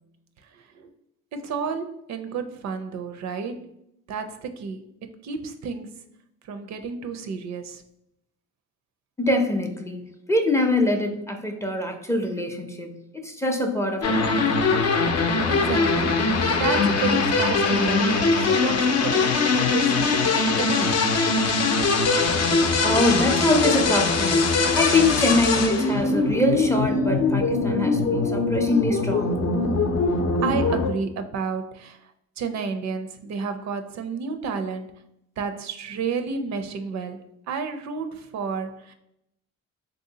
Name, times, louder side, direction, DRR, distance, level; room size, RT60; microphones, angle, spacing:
voice 1, 0.4-0.9 1.3-3.7 4.1-4.9 5.2-6.0 6.4-7.8 15.2-16.3 16.6-21.0 30.4-35.0 35.4-38.9, right 5 dB, 65° right, 8 dB, 0.5 m, -31 dB
voice 2, 9.2-14.7 22.8-29.6, left 2 dB, 10° left, 3 dB, 0.4 m, -24 dB
sound 1, 14.0-30.9, left 3 dB, 55° left, 0.6 m, -22 dB
3.4 x 2.7 x 2.7 m, 0.78 s
cardioid pair, 90°, 30 cm